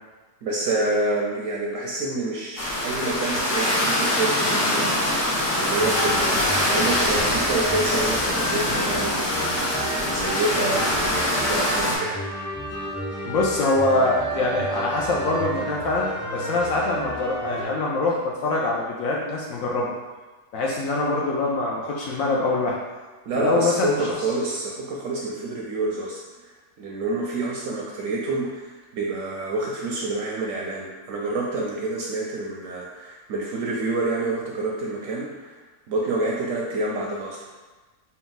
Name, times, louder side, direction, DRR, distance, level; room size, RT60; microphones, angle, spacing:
voice 1, 0.4-9.2 10.0-12.2 23.3-35.6 35.9-37.5, right 2 dB, 70° right, -2 dB, 0.8 m, -28 dB
sound 1, 2.6-12.0, left 1 dB, 55° left, 1.2 m, -24 dB
sound 2, 5.8-17.6, equal, 15° left, 0.7 m, -32 dB
voice 2, 13.2-19.9 20.5-22.8 23.4-24.0, left 2 dB, 70° left, -3 dB, 0.8 m, -24 dB
4.2 x 2.3 x 3.9 m, 1.3 s
omnidirectional pair, 1.8 m